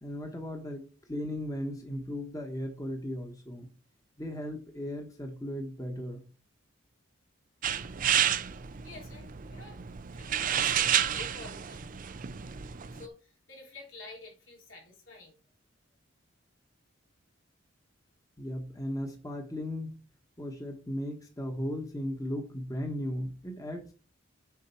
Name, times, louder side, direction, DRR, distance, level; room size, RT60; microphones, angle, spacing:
voice 1, 0.0-3.7 4.2-6.2 18.4-20.0 20.4-23.9, left 1 dB, 15° left, 3 dB, 1.2 m, -36 dB
sound 1, 7.6-13.1, right 9 dB, 40° right, 0.5 m, -30 dB
voice 2, 8.8-9.8 10.1-11.8 12.9-15.4, left 3 dB, 75° left, -1 dB, 3.3 m, -49 dB
7.3 x 5.0 x 4.3 m, 0.35 s
head